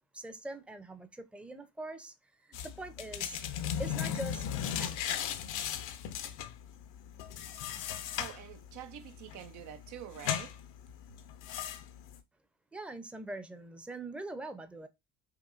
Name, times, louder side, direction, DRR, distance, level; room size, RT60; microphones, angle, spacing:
voice 1, 0.1-2.1 2.4-3.4 3.8-4.5 4.8-5.3 12.7-14.9, right 2 dB, 5° right, 0.6 m, -43 dB
sound 1, 2.5-12.2, left 9 dB, 70° left, 0.7 m, -37 dB
voice 2, 8.1-10.5, right 11 dB, 65° right, 0.5 m, -46 dB
5.7 x 2.6 x 2.5 m
supercardioid pair, 90°, 32 cm